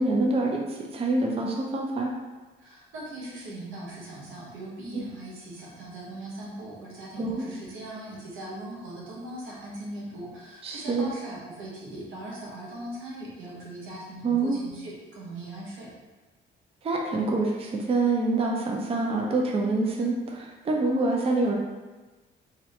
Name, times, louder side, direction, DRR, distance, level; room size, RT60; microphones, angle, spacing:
voice 1, 0.0-2.1 7.2-7.5 10.6-11.1 14.2-14.6 16.8-21.6, right 3 dB, 30° right, 0 dB, 0.4 m, -26 dB
voice 2, 2.6-15.9, right 1 dB, 85° right, -5 dB, 1.0 m, -40 dB
2.7 x 2.6 x 3.1 m, 1.2 s
cardioid pair, 90°, 20 cm